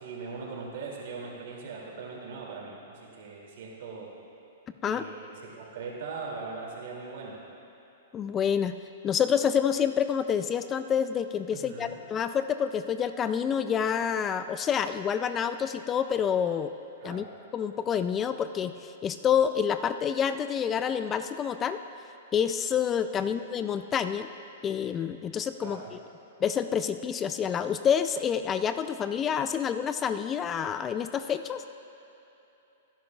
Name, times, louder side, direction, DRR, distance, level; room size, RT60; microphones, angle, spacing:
voice 1, 0.0-4.1 4.8-7.4 11.5-12.0 17.0-17.3 23.2-23.3 25.6-25.9, right 4 dB, 65° right, -2 dB, 2.5 m, -40 dB
voice 2, 8.1-8.7 9.0-16.7 17.0-17.2 17.5-21.8 22.3-24.3 24.6-26.0 26.4-31.6, left 8 dB, 25° left, 11 dB, 0.3 m, -28 dB
17.0 x 10.5 x 2.4 m, 2.9 s
hypercardioid pair, 125°, 0 cm